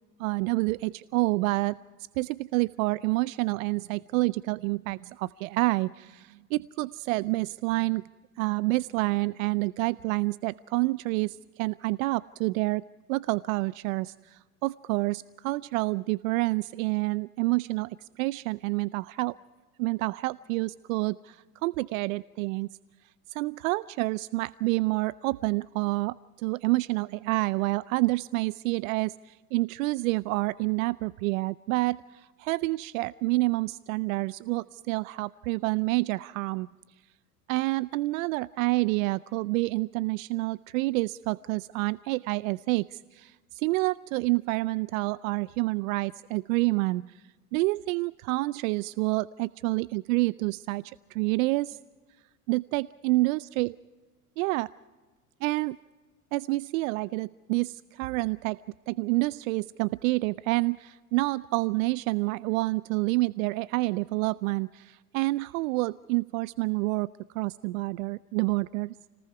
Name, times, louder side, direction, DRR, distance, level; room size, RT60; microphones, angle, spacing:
voice 1, 0.2-1.8 2.2-8.0 8.4-12.8 13.1-19.4 19.8-22.8 23.3-36.7 37.5-47.2 47.5-51.8 52.5-53.7 54.4-54.7 55.4-55.8 56.3-58.6 58.9-69.0, right 22 dB, 60° right, 19 dB, 0.5 m, -28 dB
29.5 x 19.5 x 4.7 m, 1.3 s
hypercardioid pair, 85°, 45 cm